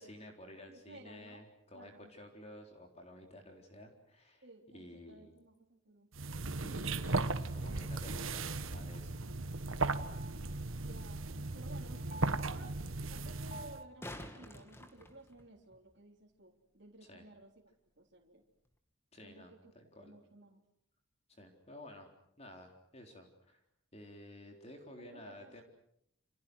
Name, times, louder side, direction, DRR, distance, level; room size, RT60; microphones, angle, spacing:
voice 1, 0.0-4.4 4.7-5.3 6.6-9.2 17.0-17.3 19.1-20.2 21.3-22.1 22.4-23.6 23.9-25.6, left 1 dB, 30° left, 3 dB, 4.0 m, -53 dB
voice 2, 0.7-1.5 1.7-2.1 4.4-6.1 10.7-11.3 11.5-12.7 13.1-17.5 18.0-18.4 19.2-19.7 20.0-20.6 25.0-25.6, right 1 dB, 50° right, 0 dB, 3.6 m, -55 dB
sound 1, 6.1-13.8, right 3 dB, 70° right, 1.5 m, -37 dB
sound 2, 8.6-14.0, equal, 80° left, 1.7 m, -53 dB
sound 3, 13.8-15.8 18.7-18.8, left 1 dB, 10° left, 2.2 m, -49 dB
29.5 x 28.0 x 6.4 m, 0.71 s
head